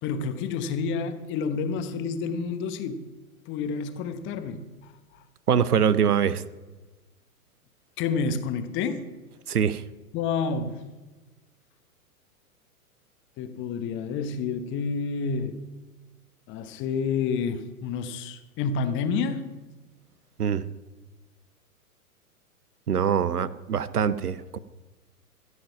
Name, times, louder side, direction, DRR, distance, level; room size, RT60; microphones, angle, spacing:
voice 1, 0.0-3.0 3.5-4.9 8.0-9.0 10.1-10.8 13.4-15.5 16.5-19.4, left 5 dB, 25° left, 10 dB, 1.0 m, -29 dB
voice 2, 5.5-6.4 9.5-9.8 20.4-20.6 22.9-24.6, right 7 dB, 80° right, 17 dB, 0.8 m, -23 dB
15.0 x 7.9 x 5.9 m, 1.2 s
figure-of-eight pair, 105°, 45 cm